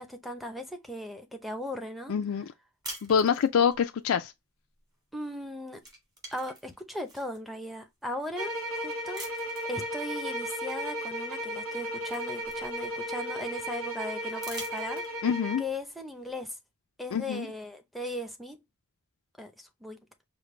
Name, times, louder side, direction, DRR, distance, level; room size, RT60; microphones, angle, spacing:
voice 1, 0.0-2.1 5.1-5.9 6.3-9.2 9.7-15.0 15.6-16.5 17.0-18.6 19.4-20.0, left 1 dB, ahead, 0.7 m, -38 dB
voice 2, 2.1-2.4 3.0-4.3 15.2-15.6 17.1-17.5, left 7 dB, 80° left, 0.4 m, -25 dB
sound 1, 2.8-3.8 5.2-5.5 5.8-7.4 8.0-8.1 9.1-9.7 11.2-11.3 11.7-13.2 14.3-15.4, right 2 dB, 20° right, 1.6 m, -45 dB
sound 2, 8.4-15.7, equal, 80° right, 1.2 m, -35 dB
5.1 x 2.1 x 3.1 m
head